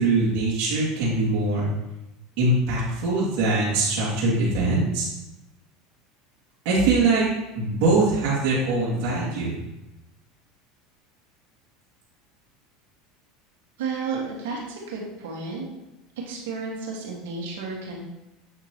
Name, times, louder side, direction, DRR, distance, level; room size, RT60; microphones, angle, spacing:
voice 1, 0.0-1.7 2.4-5.0 6.6-7.3 7.5-9.5, right 2 dB, 60° right, -7 dB, 2.5 m, -22 dB
voice 2, 13.8-15.7 16.3-18.0, right 4 dB, 85° right, -1 dB, 1.8 m, -32 dB
8.2 x 5.9 x 3.0 m, 0.94 s
supercardioid pair, 125°, 0 cm